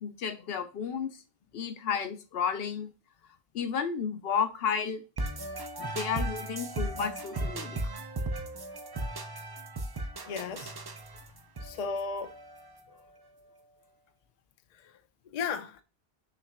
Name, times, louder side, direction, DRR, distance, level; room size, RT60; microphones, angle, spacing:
voice 1, 0.0-1.1 1.5-2.9 3.5-5.0 5.8-7.9, left 7 dB, 75° left, 0.8 m, -32 dB
sound 1, 5.2-13.0, right 2 dB, 35° right, 0.4 m, -36 dB
voice 2, 10.3-10.7 11.6-12.3 15.3-15.8, left 5 dB, 50° left, 0.5 m, -34 dB
5.7 x 3.1 x 2.4 m
omnidirectional pair, 1.0 m